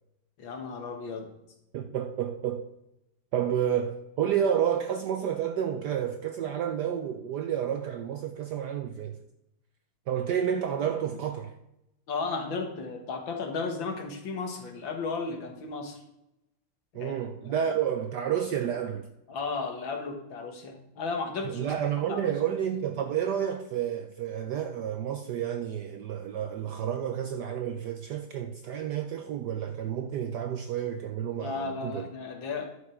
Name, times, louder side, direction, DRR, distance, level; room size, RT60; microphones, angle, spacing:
voice 1, 0.4-1.3 12.1-16.0 16.9-17.1 17.5-17.7 19.3-21.7 22.1-22.3 31.4-32.7, left 4 dB, 65° left, 2.2 m, -34 dB
voice 2, 1.7-2.7 3.3-9.2 10.1-11.5 16.9-19.1 21.5-32.1, right 9 dB, 70° right, 1.0 m, -30 dB
11.0 x 7.1 x 5.0 m
omnidirectional pair, 2.4 m